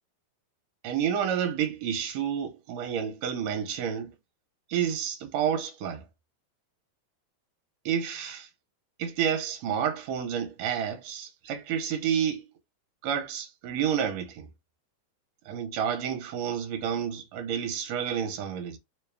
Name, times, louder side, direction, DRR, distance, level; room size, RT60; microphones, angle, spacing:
voice 1, 0.8-4.1 4.7-6.0 7.9-8.5 9.0-12.4 13.0-14.5 15.5-18.8, right 8 dB, 70° right, 1.9 m, -30 dB
4.7 x 2.2 x 3.3 m
omnidirectional pair, 3.4 m